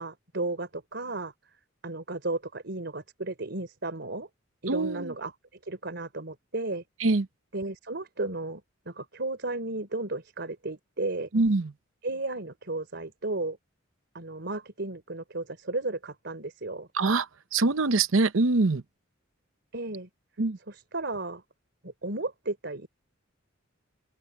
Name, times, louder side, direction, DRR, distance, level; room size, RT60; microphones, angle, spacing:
voice 1, 0.0-1.3 1.8-4.3 4.6-5.3 5.6-6.8 7.5-11.3 12.0-13.6 14.1-16.9 19.7-20.1 20.7-21.4 21.8-22.9, right 2 dB, 60° right, 3.7 m, -34 dB
voice 2, 4.7-5.1 7.0-7.3 11.3-11.7 16.9-17.3 17.5-18.8 20.4-20.6, right 3 dB, 75° right, 0.8 m, -24 dB
open air
head